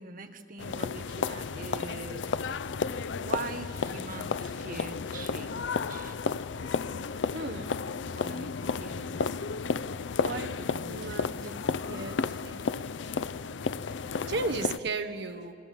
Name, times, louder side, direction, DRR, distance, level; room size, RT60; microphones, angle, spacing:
voice 1, 0.0-2.4 3.1-6.2 8.1-9.3 10.2-11.8 14.0-14.4, right 3 dB, 50° right, 7 dB, 1.4 m, -43 dB
Schritte in einer Halle gleichmäßig energisch, 0.6-14.8, left 5 dB, 75° left, 0.5 m, -33 dB
voice 2, 7.3-7.7 10.0-12.8 14.3-15.6, right 3 dB, 65° right, 7 dB, 1.2 m, -36 dB
27.5 x 22.5 x 7.6 m, 2.6 s
head